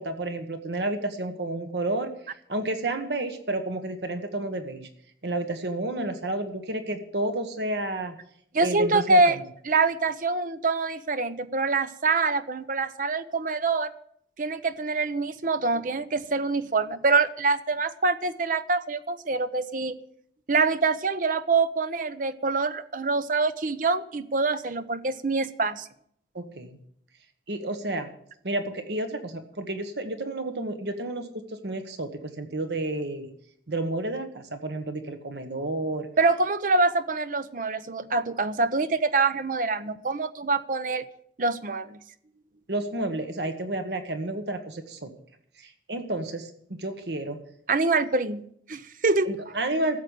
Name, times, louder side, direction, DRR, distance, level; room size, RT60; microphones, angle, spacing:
voice 1, 0.0-2.1 2.5-4.9 5.2-8.2 8.6-9.4 26.3-26.8 27.5-28.1 28.4-33.3 33.7-36.1 42.7-45.1 45.6-46.5 46.8-47.4 49.3-50.0, right 2 dB, 70° right, 7 dB, 1.3 m, -31 dB
voice 2, 8.5-9.4 9.6-13.9 14.4-20.0 20.5-25.9 36.2-41.0 41.4-42.0 47.7-49.3, right 3 dB, 50° right, 12 dB, 0.8 m, -25 dB
13.5 x 7.8 x 8.2 m, 0.68 s
head